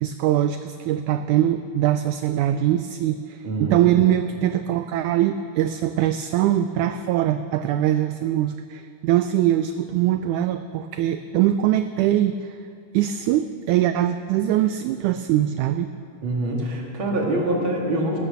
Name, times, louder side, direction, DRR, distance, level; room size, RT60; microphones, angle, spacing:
voice 1, 0.0-12.6 12.9-15.9, right 12 dB, 90° right, 10 dB, 1.7 m, -22 dB
voice 2, 3.4-3.9 16.2-18.2, right 1 dB, 40° right, -1 dB, 2.8 m, -25 dB
18.5 x 11.0 x 6.9 m, 2.4 s
omnidirectional pair, 4.0 m